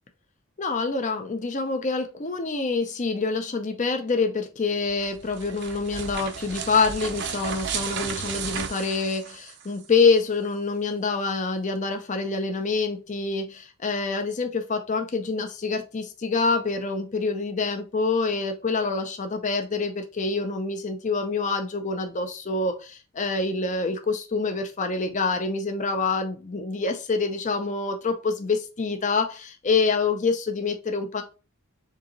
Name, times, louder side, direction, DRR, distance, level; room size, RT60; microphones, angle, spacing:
voice 1, 0.6-31.2, left 4 dB, 40° left, 5 dB, 0.6 m, -26 dB
sound 1, 4.9-9.9, right 6 dB, 60° right, 0.6 m, -34 dB
3.7 x 2.9 x 3.9 m, 0.31 s
head